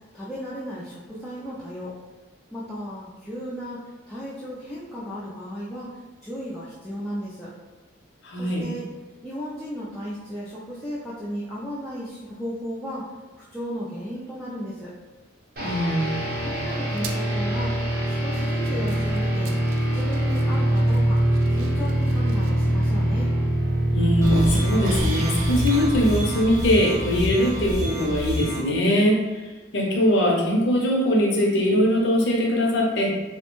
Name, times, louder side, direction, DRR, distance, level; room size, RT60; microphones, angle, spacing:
voice 1, 0.1-2.0 2.5-3.8 4.1-5.9 6.2-7.5 8.4-8.9 9.2-13.1 13.5-14.9 16.4-17.7 18.1-19.5 19.9-21.2 21.6-23.3, equal, 5° left, -9 dB, 0.3 m, -34 dB
voice 2, 8.2-8.7 15.6-16.4 23.9-29.2 29.7-33.1, equal, 65° left, -1 dB, 0.6 m, -21 dB
sound 1, 15.6-27.8, right 1 dB, 50° right, 0.7 m, -24 dB
sound 2, 16.0-22.5 23.0-23.1 23.4-26.5, right 3 dB, 90° right, 0.3 m, -39 dB
sound 3, 24.2-28.6, left 1 dB, 15° right, 0.9 m, -28 dB
3.1 x 2.1 x 3.0 m, 1.2 s
head